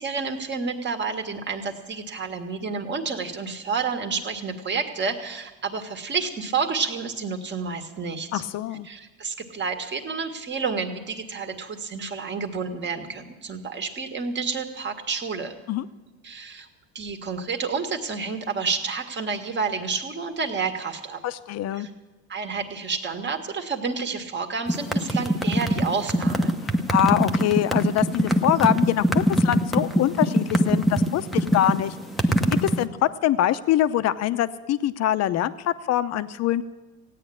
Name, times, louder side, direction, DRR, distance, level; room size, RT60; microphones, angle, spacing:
voice 1, 0.0-8.4 8.8-15.6 16.2-16.7 17.0-21.2 21.7-21.9 22.3-26.6, right 5 dB, 30° right, 6 dB, 1.9 m, -30 dB
voice 2, 8.3-8.9 15.7-15.9 21.2-21.9 26.9-32.0 32.6-36.6, left 12 dB, 45° left, 12 dB, 0.9 m, -24 dB
sound 1, 24.7-32.8, equal, ahead, 1.0 m, -22 dB
16.5 x 9.6 x 8.7 m, 1.2 s
supercardioid pair, 115°, 35 cm